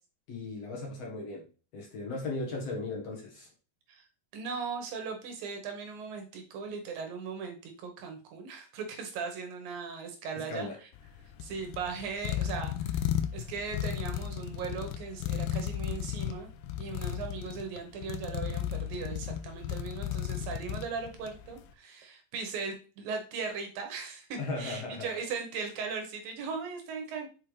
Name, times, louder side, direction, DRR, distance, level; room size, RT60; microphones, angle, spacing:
voice 1, 0.3-1.5 1.7-3.5 10.4-10.8 24.4-25.2, left 3 dB, 55° left, 2.0 m, -37 dB
voice 2, 4.3-10.7 11.4-13.0 13.3-16.5 16.8-27.3, right 5 dB, 65° right, 2.8 m, -38 dB
sound 1, 10.9-21.5, left 11 dB, 85° left, 2.1 m, -35 dB
6.7 x 5.4 x 3.3 m
omnidirectional pair, 4.8 m